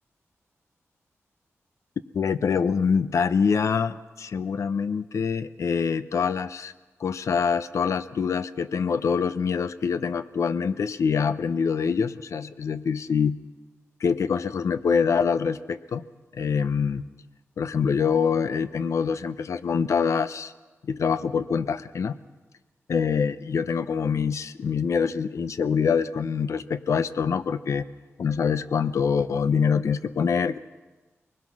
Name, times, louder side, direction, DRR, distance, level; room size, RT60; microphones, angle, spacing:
voice 1, 2.1-6.7 7.0-13.4 14.0-16.0 16.3-17.0 17.6-20.5 20.8-22.2 22.9-27.9 28.2-30.6, left 6 dB, 75° left, 13 dB, 0.7 m, -25 dB
24.0 x 20.5 x 6.2 m, 1.2 s
wide cardioid pair, 100°, 5 cm